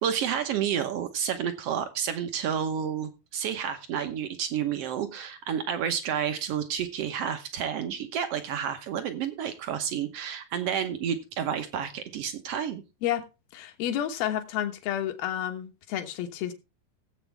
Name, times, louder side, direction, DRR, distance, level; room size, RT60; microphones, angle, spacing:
voice 1, 0.0-12.8, right 8 dB, 75° right, 1.4 m, -30 dB
voice 2, 13.5-16.5, left 11 dB, 85° left, 3.2 m, -30 dB
17.5 x 8.1 x 3.4 m
omnidirectional pair, 4.2 m